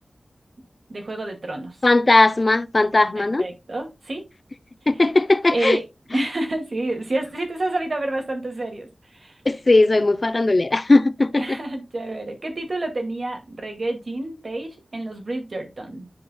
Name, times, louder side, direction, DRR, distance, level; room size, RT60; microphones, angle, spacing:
voice 1, 0.9-1.8 3.2-4.2 5.5-5.8 6.1-9.4 11.4-16.1, right 2 dB, 55° right, 2.3 m, -29 dB
voice 2, 1.8-3.4 4.9-5.8 6.1-6.3 9.5-11.6, left 2 dB, 40° left, 0.6 m, -18 dB
11.0 x 4.9 x 2.3 m
wide cardioid pair, 85°, 0 cm